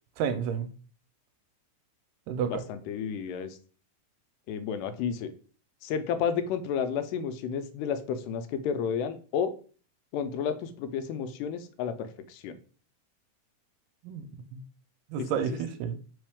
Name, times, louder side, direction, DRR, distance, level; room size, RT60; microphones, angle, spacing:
voice 1, 0.2-0.7 2.3-2.6 14.0-14.6 15.1-16.0, right 7 dB, 85° right, 2.2 m, -31 dB
voice 2, 2.5-3.6 4.5-5.3 5.8-9.5 10.1-12.6 15.2-15.3, left 7 dB, 90° left, 2.2 m, -31 dB
4.8 x 3.1 x 3.5 m
omnidirectional pair, 3.7 m